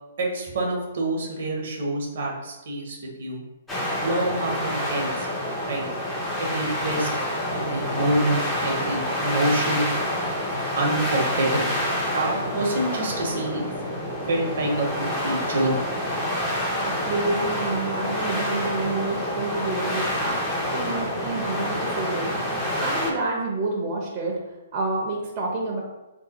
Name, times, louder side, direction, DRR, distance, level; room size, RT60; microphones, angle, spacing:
voice 1, 0.2-3.4 4.0-5.3 5.7-5.8 6.4-7.1 7.5-9.9 10.8-11.8 12.1-13.6 14.3-15.9, right 1 dB, 60° right, 0 dB, 0.9 m, -26 dB
sound 1, 3.7-23.1, left 1 dB, 10° left, 0.7 m, -27 dB
voice 2, 16.8-20.4 20.7-24.4 24.7-25.8, right 2 dB, 30° right, -3 dB, 0.7 m, -29 dB
2.7 x 2.2 x 4.0 m, 1.0 s
hypercardioid pair, 130°, 0 cm